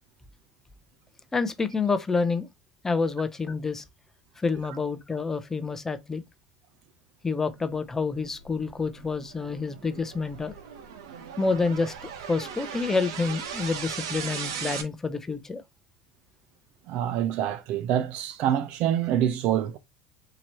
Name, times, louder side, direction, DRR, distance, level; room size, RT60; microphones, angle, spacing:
voice 1, 1.3-2.5 2.8-3.8 4.4-6.2 7.2-10.5 11.4-11.9 12.3-15.6, left 4 dB, 15° left, 0.6 m, -28 dB
sound 1, 7.9-14.8, right 7 dB, 80° right, 1.0 m, -38 dB
voice 2, 16.9-19.8, right 10 dB, 60° right, 0.7 m, -26 dB
4.4 x 2.9 x 2.9 m
supercardioid pair, 100°, 3 cm